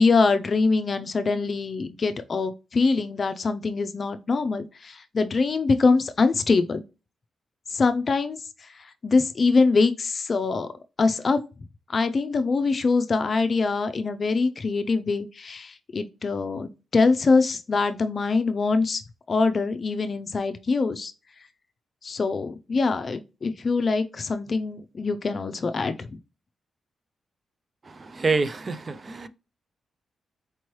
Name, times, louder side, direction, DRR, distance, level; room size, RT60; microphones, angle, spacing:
voice 1, 0.0-6.8 7.7-8.7 9.0-10.7 11.0-11.4 11.9-19.0 19.3-21.1 22.0-26.2, left 4 dB, 45° left, 0.4 m, -23 dB
voice 2, 27.9-29.3, right 4 dB, 35° right, 0.4 m, -27 dB
4.4 x 3.0 x 3.0 m
cardioid pair, 95°, 0 cm